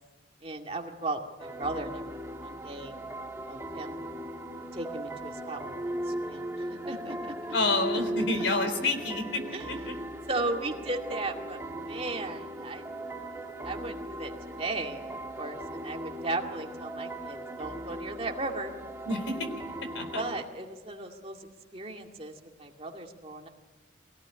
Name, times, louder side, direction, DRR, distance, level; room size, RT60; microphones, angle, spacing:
voice 1, 0.4-3.0 3.5-4.0 4.7-5.8 6.0-7.2 9.5-12.8 13.6-14.3 14.6-18.7 20.1-21.4 21.7-23.5, right 2 dB, 30° right, 2 dB, 2.2 m, -36 dB
sound 1, 1.4-20.4, right 1 dB, 15° right, 1.5 m, -38 dB
voice 2, 7.5-9.6 9.9-10.0 19.1-19.5 19.9-20.2, left 2 dB, 85° left, 8 dB, 3.7 m, -28 dB
24.0 x 17.5 x 9.9 m, 1.3 s
head